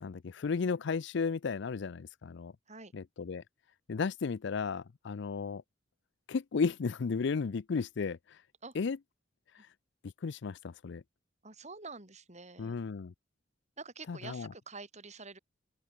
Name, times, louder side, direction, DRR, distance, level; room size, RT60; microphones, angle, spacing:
voice 1, 0.0-2.5 2.9-3.4 3.9-5.6 6.3-8.2 8.7-9.0 10.2-11.0 12.6-13.1 14.1-14.5, left 5 dB, 65° left, 0.5 m, -34 dB
voice 2, 11.4-12.8 13.8-15.4, right 4 dB, 40° right, 7.3 m, -47 dB
open air
head